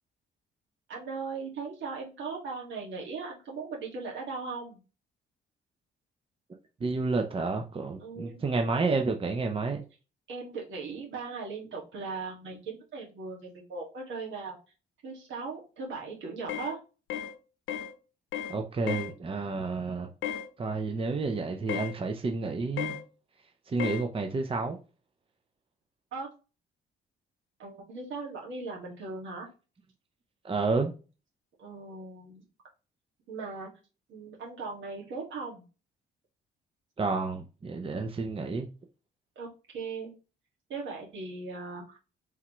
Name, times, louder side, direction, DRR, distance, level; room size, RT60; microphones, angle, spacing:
voice 1, 0.9-4.8 8.0-8.4 10.3-14.6 15.0-16.8 26.1-26.3 27.6-29.5 31.6-32.4 33.3-33.7 34.1-35.6 39.4-40.1 40.7-42.0, right 4 dB, 70° right, 2.0 m, -38 dB
voice 2, 6.8-9.8 18.5-20.1 20.6-23.0 23.7-24.8 30.4-30.9 37.0-38.7, right 3 dB, 30° right, 0.6 m, -30 dB
sound 1, 16.5-16.7 17.1-17.3 17.7-17.9 18.3-18.6 18.9-19.1 20.2-20.5 21.7-21.9 22.8-23.0 23.8-24.0, left 10 dB, 80° left, 0.7 m, -33 dB
4.5 x 3.6 x 3.0 m
cardioid pair, 90°, 20 cm